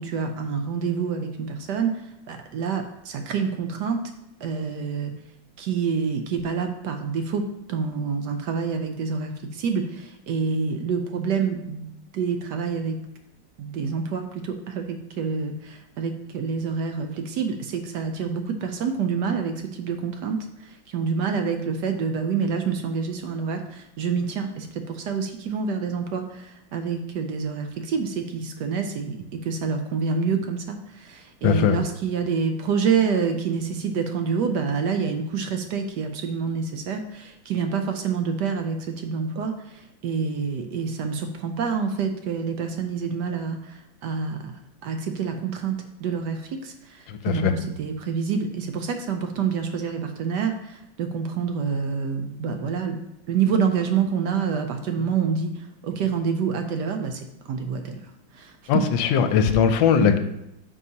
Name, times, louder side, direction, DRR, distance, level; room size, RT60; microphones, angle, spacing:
voice 1, 0.0-4.0 4.4-5.1 5.6-13.0 13.6-44.5 44.8-53.0 53.3-58.0 58.3-58.8 60.0-60.1, right 6 dB, 70° right, 6 dB, 1.1 m, -27 dB
voice 2, 31.4-31.8 47.1-47.5 58.7-60.2, left 7 dB, 85° left, 9 dB, 1.3 m, -20 dB
9.4 x 5.5 x 2.8 m, 0.85 s
omnidirectional pair, 2.1 m